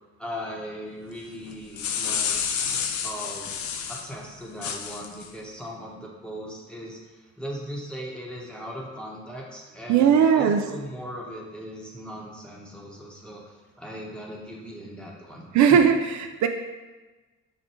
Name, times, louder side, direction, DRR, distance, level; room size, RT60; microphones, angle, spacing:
voice 1, 0.2-2.6 3.0-3.5 3.9-15.8, equal, 5° left, -3 dB, 1.0 m, -38 dB
sound 1, 1.5-4.1 4.6-5.3, left 7 dB, 70° left, 0.5 m, -29 dB
voice 2, 9.9-10.6 15.5-16.5, right 7 dB, 70° right, 6 dB, 0.4 m, -18 dB
5.6 x 2.2 x 4.3 m, 1.2 s
cardioid pair, 90°, 30 cm